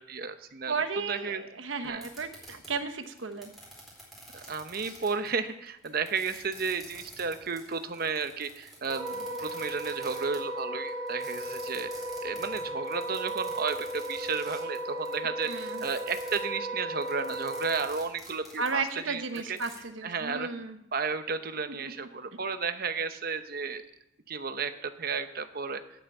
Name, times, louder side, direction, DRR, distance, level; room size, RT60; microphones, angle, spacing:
voice 1, 0.0-0.7 1.1-1.4 1.8-2.0 4.3-11.9 12.2-18.8 19.1-19.2 19.5-19.6 20.0-20.5 20.9-23.8 24.3-25.8, right 5 dB, 50° right, 9 dB, 0.8 m, -33 dB
voice 2, 0.7-3.5 15.4-15.8 18.6-20.8 21.8-22.1, right 4 dB, 75° right, 8 dB, 1.1 m, -34 dB
sound 1, 1.8-16.4 16.9-19.8, right 1 dB, ahead, 4.3 m, -49 dB
Wind instrument woodwind instrument, 8.9-17.9, right 1 dB, 15° right, 2.0 m, -36 dB
9.4 x 9.0 x 8.3 m, 0.82 s
head